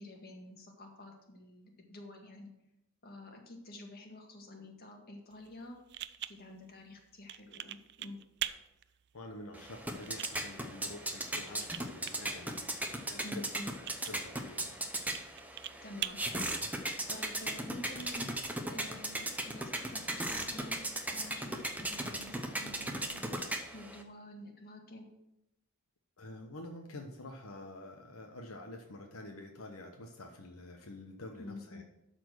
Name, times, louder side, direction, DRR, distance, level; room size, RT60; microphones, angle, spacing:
voice 1, 0.0-2.5 3.0-5.8 6.3-8.2 13.2-13.7 15.8-16.5 16.8-20.8 21.1-23.2 23.7-25.0 31.4-31.8, left 1 dB, 45° left, 2 dB, 1.8 m, -49 dB
sound 1, 5.3-17.3, right 12 dB, 50° right, 0.4 m, -46 dB
voice 2, 9.1-14.8 26.2-31.8, left 1 dB, 80° left, 3 dB, 1.0 m, -48 dB
sound 2, 9.5-24.0, right 1 dB, 10° right, 0.8 m, -38 dB
12.0 x 4.4 x 6.2 m, 0.84 s
head